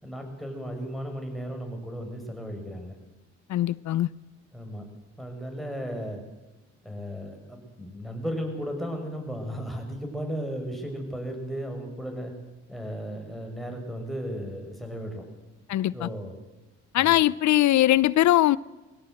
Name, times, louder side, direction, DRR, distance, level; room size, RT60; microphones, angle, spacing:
voice 1, 0.0-2.9 4.5-4.8 5.2-6.2 6.8-12.3 12.7-15.2 15.9-16.4 17.0-17.2, equal, ahead, 5.8 m, -35 dB
voice 2, 3.5-4.1 15.7-16.1 16.9-18.6, left 14 dB, 70° left, 0.6 m, -21 dB
21.5 x 17.0 x 7.8 m
cardioid pair, 90°, 30 cm